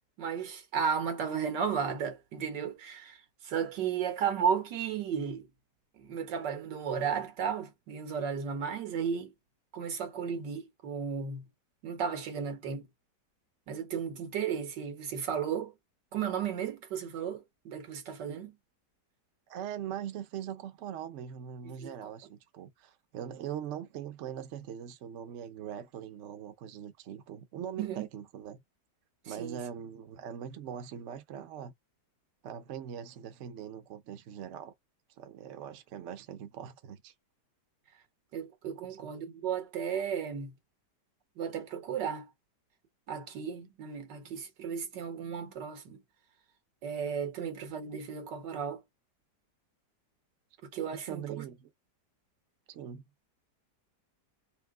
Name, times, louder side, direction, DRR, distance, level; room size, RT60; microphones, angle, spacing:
voice 1, 0.2-3.2 3.4-5.5 5.9-9.3 9.7-11.5 11.8-12.9 13.7-15.7 16.1-18.6 21.6-22.1 27.8-28.1 29.3-29.6 38.3-40.6 41.4-42.3 43.1-46.0 46.8-48.8 50.6-51.5, right 7 dB, 90° right, 1.8 m, -34 dB
voice 2, 19.5-28.6 29.2-31.7 32.4-34.7 35.2-37.1 38.8-39.1 51.1-51.7 52.7-53.0, right 9 dB, 60° right, 0.8 m, -41 dB
3.6 x 2.8 x 3.5 m
omnidirectional pair, 1.8 m